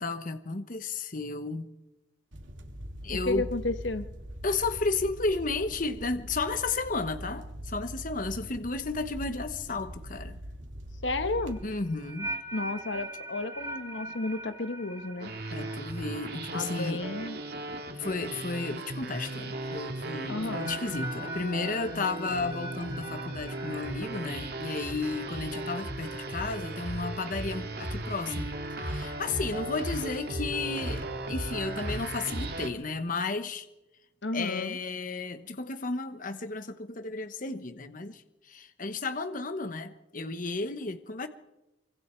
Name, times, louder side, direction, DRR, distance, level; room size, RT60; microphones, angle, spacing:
voice 1, 0.0-1.7 3.0-3.5 4.4-10.4 11.6-12.3 15.5-17.0 18.0-28.5 28.8-33.7 34.3-41.3, left 3 dB, 45° left, 1.1 m, -33 dB
sound 1, 2.3-11.7, equal, 90° right, 2.8 m, -42 dB
voice 2, 3.1-4.1 11.0-11.6 12.5-15.3 16.5-17.4 20.3-20.7 34.2-34.8, left 2 dB, 75° left, 1.3 m, -32 dB
sound 2, 11.3-18.4 18.6-19.1 20.3-24.9, right 2 dB, 20° right, 1.9 m, -42 dB
sound 3, 15.2-32.7, right 1 dB, 55° right, 2.4 m, -36 dB
25.0 x 25.0 x 4.6 m
head